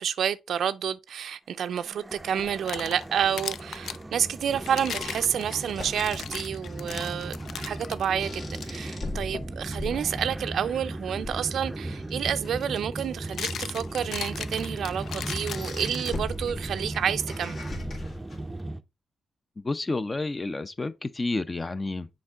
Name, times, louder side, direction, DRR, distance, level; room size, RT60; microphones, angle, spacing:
voice 1, 0.0-17.6, right 8 dB, 75° right, 0.4 m, -29 dB
sound 1, 1.6-18.8, right 2 dB, 15° right, 0.5 m, -37 dB
sound 2, 2.4-4.0 4.6-8.1 8.5-8.7 9.3-9.6 11.7-11.8 13.0-16.5, left 8 dB, 75° left, 0.4 m, -37 dB
sound 3, 3.6-18.6, left 2 dB, 55° left, 2.6 m, -42 dB
voice 2, 19.6-22.1, left 2 dB, 25° left, 0.6 m, -30 dB
6.3 x 4.5 x 3.4 m
cardioid pair, 75°, 0 cm